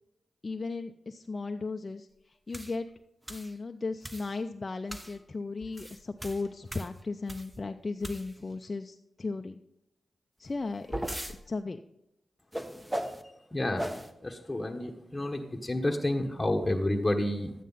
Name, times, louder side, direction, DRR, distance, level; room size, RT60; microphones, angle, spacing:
voice 1, 0.4-2.1 2.5-2.9 3.3-9.6 10.4-11.0 11.5-11.8, left 3 dB, 45° left, 5 dB, 0.5 m, -36 dB
sound 1, 2.5-2.8 3.3-3.5 4.0-4.4 4.9-5.2 5.6-7.6 8.0-8.5 10.4-11.4 12.5-13.2 13.8-14.1, right 1 dB, 10° right, 1.1 m, -38 dB
voice 2, 13.5-13.9 14.2-17.5, left 1 dB, 20° left, 3 dB, 1.3 m, -30 dB
12.0 x 9.1 x 4.1 m, 0.83 s
supercardioid pair, 40°, 0 cm